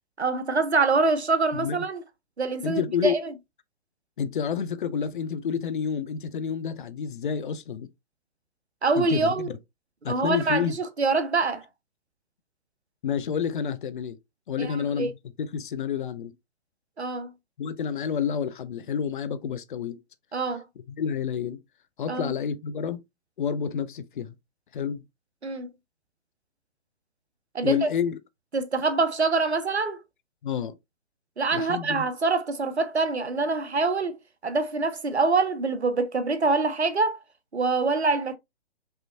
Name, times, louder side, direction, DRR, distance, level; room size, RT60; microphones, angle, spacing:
voice 1, 0.2-2.0 2.4-3.3 8.8-9.5 10.1-11.6 14.6-15.1 17.0-17.3 20.3-20.6 22.1-22.3 25.4-25.7 27.5-27.9 28.5-30.0 31.4-37.2 37.5-38.4, right 3 dB, 85° right, 0.9 m, -25 dB
voice 2, 2.6-3.2 4.2-7.9 9.0-9.5 10.0-10.8 13.0-14.2 14.5-15.1 15.4-16.3 17.6-20.0 20.9-21.6 22.0-23.0 23.4-24.3 24.7-25.0 27.6-28.2 30.4-30.7 31.5-32.0, left 7 dB, 50° left, 0.6 m, -29 dB
5.4 x 3.0 x 2.6 m
figure-of-eight pair, 125°, 32 cm